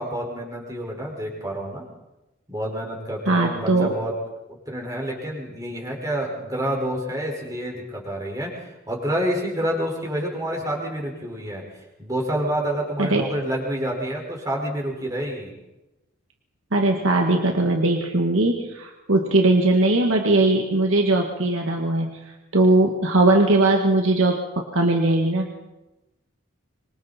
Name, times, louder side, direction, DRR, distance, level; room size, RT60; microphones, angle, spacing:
voice 1, 0.0-1.8 2.5-4.1 4.5-15.5, right 1 dB, 15° right, -1 dB, 5.4 m, -28 dB
voice 2, 3.3-3.9 13.0-13.2 16.7-22.2 22.5-24.4 24.7-25.5, right 2 dB, 75° right, 1 dB, 1.9 m, -19 dB
26.0 x 24.0 x 4.4 m, 1.0 s
head